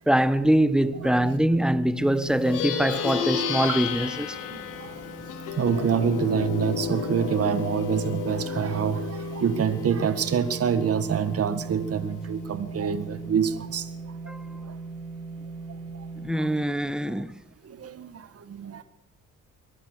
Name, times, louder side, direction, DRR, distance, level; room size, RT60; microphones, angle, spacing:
voice 1, 0.0-4.4 14.3-14.4 16.2-17.3, right 1 dB, ahead, 1.4 m, -23 dB
sound 1, 0.9-16.4, right 3 dB, 20° right, 7.7 m, -39 dB
voice 2, 1.0-1.4 3.1-3.2 3.7-3.8 4.5-4.9 5.6-13.9 16.4-16.5 17.6-18.8, right 7 dB, 50° right, 1.8 m, -26 dB
Plucked string instrument, 2.3-12.0, left 8 dB, 90° left, 4.6 m, -33 dB
23.5 x 18.0 x 6.7 m
cardioid pair, 90°, 30 cm